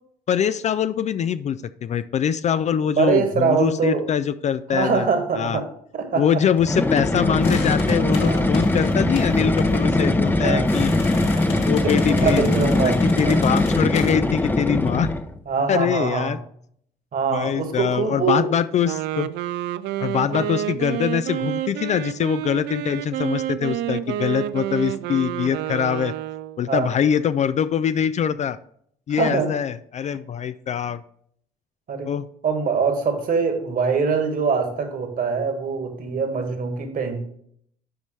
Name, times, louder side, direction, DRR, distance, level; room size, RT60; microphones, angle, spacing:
voice 1, 0.3-5.1 5.3-5.6 6.2-10.9 11.7-12.5 13.0-15.1 15.7-16.4 17.3-19.3 20.0-26.1 26.6-28.6 29.1-31.0 32.1-32.2, left 8 dB, 35° left, 14 dB, 0.4 m, -23 dB
voice 2, 3.0-4.0 4.7-5.7 5.9-6.4 8.2-8.5 10.4-10.6 11.8-13.4 15.5-16.3 17.1-18.5 20.3-20.4 26.7-26.9 29.1-29.5 31.9-32.1 32.4-37.2, right 5 dB, 45° right, 5 dB, 1.8 m, -23 dB
sound 1, 6.6-15.4, left 1 dB, 10° left, 0.7 m, -21 dB
sound 2, 7.4-14.2, left 4 dB, 70° left, 1.9 m, -36 dB
Wind instrument woodwind instrument, 18.7-26.6, right 12 dB, 65° right, 0.4 m, -29 dB
10.5 x 5.2 x 3.3 m, 0.67 s
hypercardioid pair, 55°, 19 cm